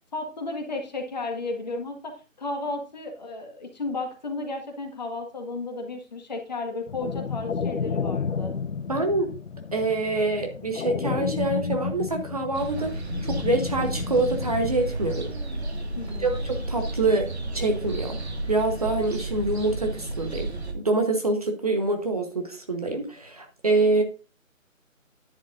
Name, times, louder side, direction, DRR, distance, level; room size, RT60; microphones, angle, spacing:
voice 1, 0.1-8.5 16.0-16.4, left 3 dB, 30° left, 3 dB, 1.8 m, -33 dB
sound 1, 6.9-14.7, left 5 dB, 65° left, 0.6 m, -31 dB
voice 2, 8.9-9.3 9.7-15.3 16.2-18.2 18.5-20.5 20.7-24.0, right 2 dB, 30° right, 4 dB, 1.1 m, -25 dB
sound 2, 12.5-20.7, right 2 dB, 50° right, 2.1 m, -32 dB
10.5 x 10.0 x 2.6 m, 0.33 s
figure-of-eight pair, 155°, 40 cm